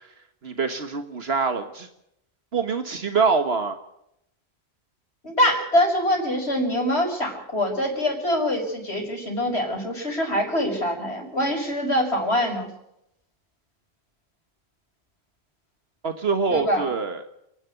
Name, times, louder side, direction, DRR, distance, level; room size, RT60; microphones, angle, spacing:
voice 1, 0.4-1.9 2.5-3.8 16.0-17.2, right 5 dB, 70° right, 8 dB, 1.7 m, -24 dB
voice 2, 5.2-12.7 16.5-16.8, left 1 dB, 80° left, 2 dB, 6.3 m, -24 dB
29.5 x 11.0 x 8.1 m, 0.80 s
omnidirectional pair, 1.1 m